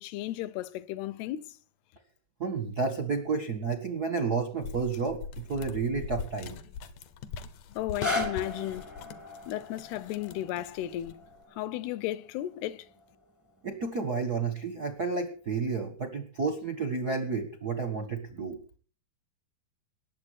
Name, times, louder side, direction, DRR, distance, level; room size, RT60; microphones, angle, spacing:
voice 1, 0.0-1.6 7.7-8.9 9.5-11.2 11.5-12.9, left 13 dB, 85° left, 2.8 m, -34 dB
voice 2, 2.4-6.6 13.6-18.6, right 4 dB, 75° right, 0.8 m, -31 dB
sound 1, 4.6-11.4, left 6 dB, 70° left, 2.2 m, -42 dB
sound 2, 7.7-13.8 14.5-14.6, left 2 dB, 20° left, 0.4 m, -38 dB
19.5 x 7.8 x 6.4 m
omnidirectional pair, 4.5 m